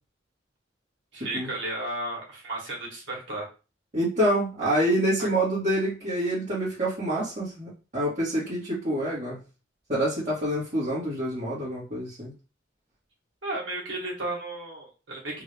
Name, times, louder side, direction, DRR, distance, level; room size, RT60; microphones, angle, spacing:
voice 1, 1.1-3.5 5.2-5.3 13.4-15.4, right 2 dB, 65° right, -3 dB, 1.8 m, -34 dB
voice 2, 3.9-9.4 9.9-12.3, right 1 dB, 35° right, -11 dB, 1.7 m, -27 dB
3.7 x 2.7 x 3.4 m, 0.33 s
head